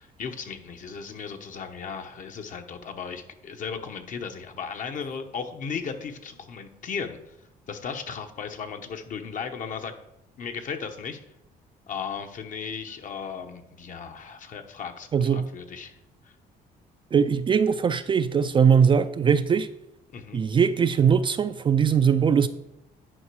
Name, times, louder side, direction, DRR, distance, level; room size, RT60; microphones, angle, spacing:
voice 1, 0.0-7.3 7.7-9.9 10.4-11.2 11.9-16.0 16.2-16.3 20.1-20.4, left 6 dB, 50° left, 1.0 m, -36 dB
voice 2, 15.1-15.5 17.1-19.7 20.3-22.5, right 7 dB, 30° right, 0.4 m, -21 dB
9.9 x 5.1 x 4.7 m
cardioid pair, 110°, 17 cm